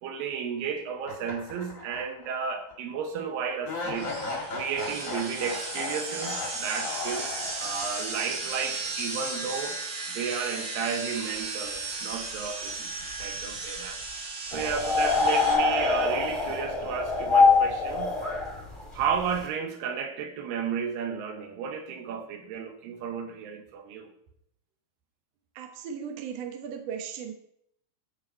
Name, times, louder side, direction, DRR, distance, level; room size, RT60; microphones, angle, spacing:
voice 1, 0.0-4.1 4.5-9.8 10.1-14.0 14.5-18.1 18.9-24.1, right 6 dB, 70° right, 5 dB, 2.6 m, -33 dB
sound 1, 1.0-2.3 2.7-2.8 3.6-7.9, left 3 dB, 50° left, 0.9 m, -36 dB
sound 2, 3.9-15.5, right 3 dB, 50° right, 1.9 m, -35 dB
sound 3, 14.5-19.4, left 4 dB, 20° left, 0.7 m, -24 dB
voice 2, 25.5-27.3, right 7 dB, 85° right, 4 dB, 1.4 m, -37 dB
12.5 x 5.1 x 4.4 m, 0.72 s
omnidirectional pair, 4.6 m